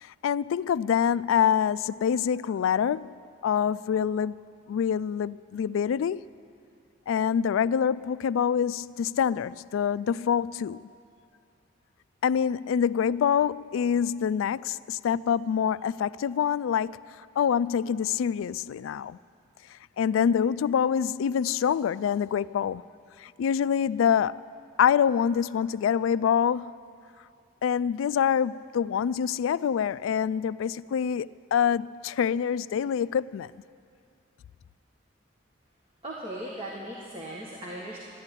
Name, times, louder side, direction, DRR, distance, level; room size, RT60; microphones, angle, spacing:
voice 1, 0.0-4.4 4.7-6.2 7.1-10.9 12.2-17.0 17.4-19.2 19.7-22.8 23.2-24.4 24.8-26.7 27.6-33.5, left 8 dB, 90° left, 0.3 m, -26 dB
voice 2, 36.0-38.0, right 1 dB, 30° right, 1.6 m, -38 dB
13.5 x 10.5 x 9.8 m
head